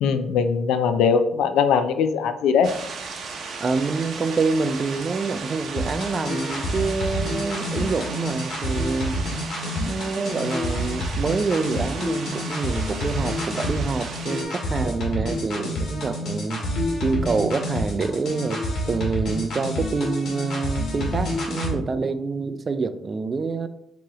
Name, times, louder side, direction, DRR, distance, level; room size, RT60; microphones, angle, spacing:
voice 1, 0.0-2.7, left 6 dB, 85° left, 9 dB, 0.4 m, -20 dB
sound 1, 2.6-14.4, right 4 dB, 65° right, 0.7 m, -36 dB
voice 2, 3.6-9.2 9.8-16.6 17.0-18.6 18.9-23.7, right 4 dB, 40° right, 11 dB, 0.4 m, -26 dB
sound 2, 5.8-21.7, left 1 dB, 65° left, 1.5 m, -28 dB
4.7 x 3.0 x 3.6 m, 0.78 s
cardioid pair, 90°, 0 cm